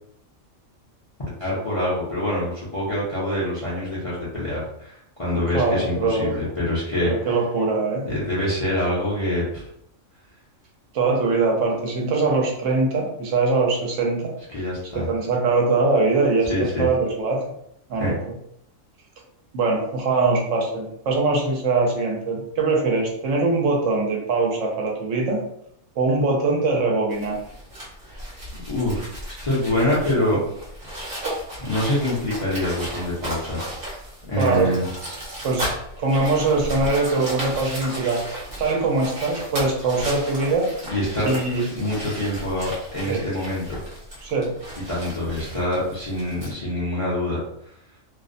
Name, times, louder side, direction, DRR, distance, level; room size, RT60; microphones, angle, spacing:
voice 1, 1.4-7.1 8.1-9.6 14.5-15.1 16.5-16.9 17.9-18.1 28.5-29.0 29.4-30.4 31.6-33.6 34.3-34.8 40.9-41.3 41.7-43.8 44.9-47.4, left 1 dB, 35° left, -8 dB, 0.5 m, -25 dB
voice 2, 5.5-6.4 7.0-8.1 10.9-14.3 14.9-17.4 17.9-18.3 19.5-25.4 26.0-27.4 34.4-34.7 35.4-35.7 36.0-40.7 41.3-41.6 43.0-43.2 44.2-44.6, right 3 dB, 75° right, 0 dB, 0.9 m, -22 dB
sound 1, 27.1-46.5, equal, 50° right, 0.9 m, -35 dB
2.5 x 2.0 x 2.5 m, 0.74 s
omnidirectional pair, 1.3 m